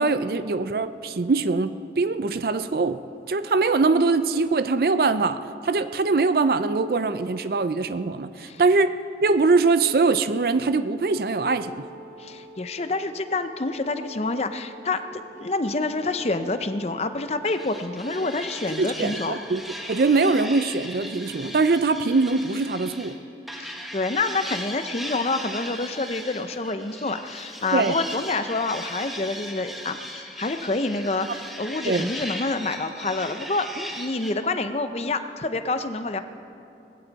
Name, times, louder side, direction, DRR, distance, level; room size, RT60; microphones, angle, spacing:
voice 1, 0.0-3.0 3.3-8.9 9.2-11.8 18.8-19.6 19.9-23.2 27.7-27.9 31.8-32.1, right 3 dB, 55° right, 12 dB, 0.4 m, -22 dB
Wind instrument woodwind instrument, 11.0-20.2, right 2 dB, 35° right, 3.5 m, -47 dB
voice 2, 12.2-19.4 23.6-36.2, left 3 dB, 35° left, 9 dB, 0.6 m, -27 dB
sound 1, 17.4-23.2 23.5-34.3, equal, ahead, 1.2 m, -38 dB
20.5 x 15.5 x 4.0 m, 2.7 s
head